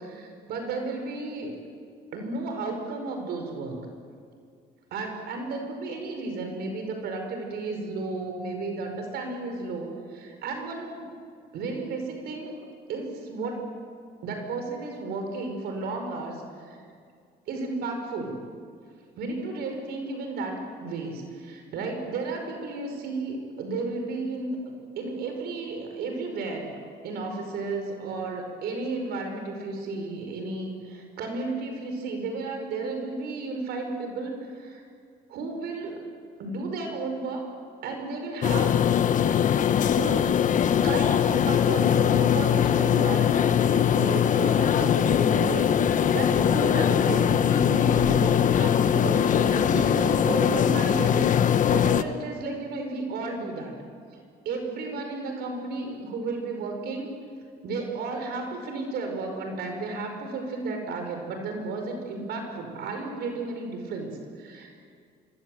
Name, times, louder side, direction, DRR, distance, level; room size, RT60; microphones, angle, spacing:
voice 1, 0.0-1.6 2.1-3.8 4.9-11.1 11.5-12.5 12.9-13.6 14.2-16.8 17.5-18.4 19.2-26.8 27.0-34.8 35.3-36.0 36.4-37.4 37.8-38.8 39.7-40.2 40.8-53.7 54.4-57.1 57.6-64.8, right 3 dB, 70° right, 4 dB, 5.4 m, -33 dB
sound 1, 38.4-52.0, left 9 dB, 50° left, 1.2 m, -21 dB
26.5 x 23.0 x 7.9 m, 2.2 s
cardioid pair, 110°, 17 cm